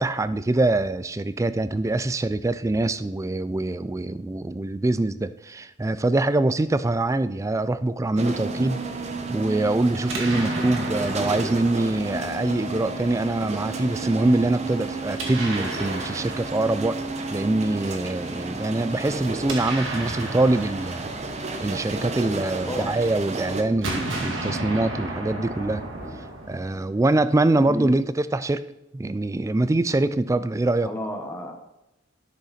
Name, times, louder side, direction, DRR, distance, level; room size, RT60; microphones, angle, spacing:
voice 1, 0.0-8.8 9.3-17.0 17.3-21.1 21.6-25.8 26.5-28.6 28.9-30.9, right 2 dB, 15° right, 14 dB, 0.3 m, -24 dB
sound 1, 8.2-23.6, right 3 dB, 35° right, 0.9 m, -32 dB
Explosion, 9.9-13.0 15.0-17.3 19.2-22.6 23.6-27.0, right 2 dB, 70° right, 2.2 m, -34 dB
voice 2, 26.0-26.3 27.7-28.0 30.8-31.5, equal, 10° left, 3 dB, 1.2 m, -32 dB
11.5 x 6.5 x 4.2 m, 0.92 s
head